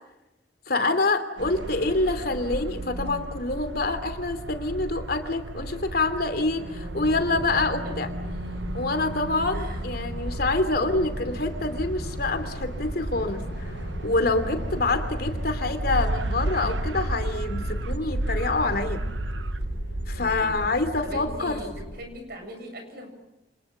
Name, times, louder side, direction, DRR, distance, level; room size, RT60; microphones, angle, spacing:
voice 1, 0.7-8.1 8.7-13.7 14.0-19.0 20.1-21.6, left 2 dB, 55° left, 8 dB, 3.0 m, -26 dB
sound 1, 1.4-20.7, right 2 dB, 80° right, 0.9 m, -33 dB
voice 2, 6.6-7.4 7.8-7.9 9.5-9.8 10.8-11.4 14.5-15.0 20.1-20.7 21.0-23.1, equal, 55° right, 5 dB, 7.5 m, -42 dB
sound 2, 7.0-22.0, equal, 70° left, 3.3 m, -37 dB
29.5 x 27.5 x 7.4 m, 0.97 s
head